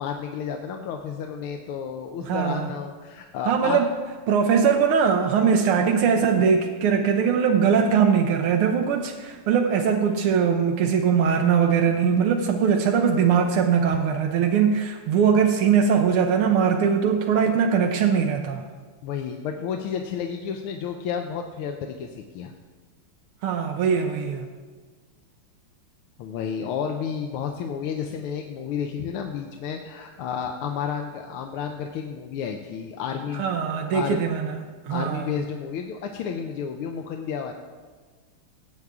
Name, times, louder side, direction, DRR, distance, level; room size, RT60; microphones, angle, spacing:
voice 1, 0.0-3.8 19.0-22.5 26.2-33.6 33.9-34.3 34.9-37.5, left 7 dB, 80° left, 4 dB, 1.5 m, -31 dB
voice 2, 2.2-2.7 3.5-3.9 4.3-18.6 23.4-24.5 33.3-34.6 34.8-35.3, right 7 dB, 85° right, 3 dB, 1.6 m, -21 dB
16.5 x 8.0 x 3.6 m, 1.5 s
omnidirectional pair, 2.4 m